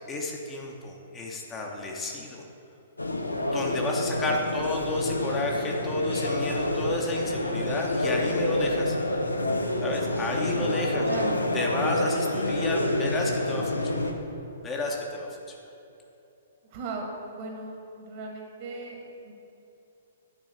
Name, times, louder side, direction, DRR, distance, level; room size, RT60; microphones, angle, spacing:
voice 1, 0.1-2.4 3.5-9.0 9.8-11.1 11.5-14.1 14.6-15.6, left 2 dB, 15° left, -1 dB, 0.9 m, -31 dB
sound 1, 3.0-14.1, left 1 dB, 85° left, 0.7 m, -28 dB
voice 2, 11.0-11.4 16.6-19.0 19.2-19.3, right 3 dB, 40° right, 0 dB, 1.5 m, -37 dB
9.4 x 4.0 x 6.3 m, 2.9 s
figure-of-eight pair, 115°, 0 cm